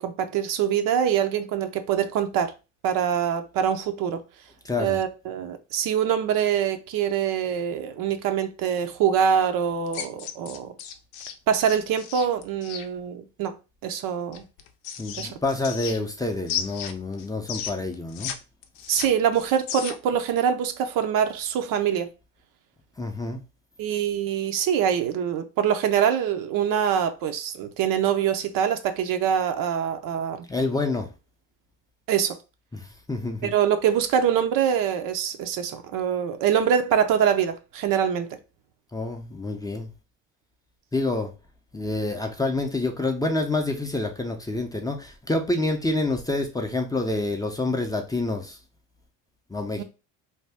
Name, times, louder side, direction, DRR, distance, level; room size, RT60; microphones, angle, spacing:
voice 1, 0.0-2.5 2.8-4.2 4.8-10.7 11.5-13.6 13.8-14.4 15.2-15.4 18.9-22.1 23.8-30.5 32.1-32.4 33.4-38.4 49.8-49.9, right 8 dB, 60° right, 0.6 m, -24 dB
voice 2, 4.6-5.0 15.0-18.3 23.0-23.4 30.5-31.1 32.7-33.5 38.9-39.9 40.9-41.3 41.7-48.6 49.5-49.8, left 2 dB, 10° left, 0.5 m, -27 dB
sound 1, 9.9-12.9 14.3-16.2 16.5-18.4 18.6-20.1, left 9 dB, 80° left, 0.6 m, -34 dB
2.7 x 2.2 x 3.4 m
supercardioid pair, 90°, 37 cm